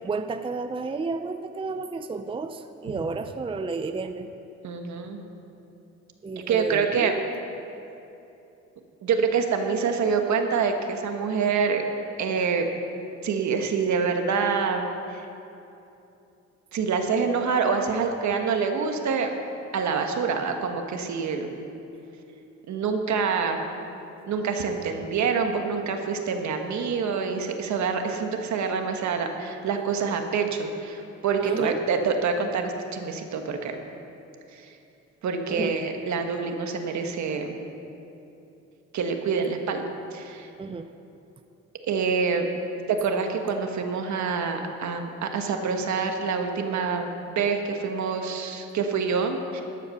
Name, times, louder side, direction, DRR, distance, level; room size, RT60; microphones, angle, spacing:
voice 1, 0.0-4.3 6.2-7.4 31.4-31.8 35.5-35.7 40.6-40.9, right 4 dB, 20° right, 8 dB, 0.5 m, -32 dB
voice 2, 4.6-5.2 6.5-7.1 9.0-11.8 12.2-12.7 13.2-15.2 16.7-19.3 19.7-21.5 22.7-23.6 24.3-33.7 34.5-34.7 35.2-37.5 38.9-39.8 40.1-40.5 41.9-42.5 42.9-49.6, right 5 dB, 70° right, 5 dB, 1.4 m, -26 dB
13.5 x 8.3 x 6.5 m, 2.8 s
cardioid pair, 90°, 30 cm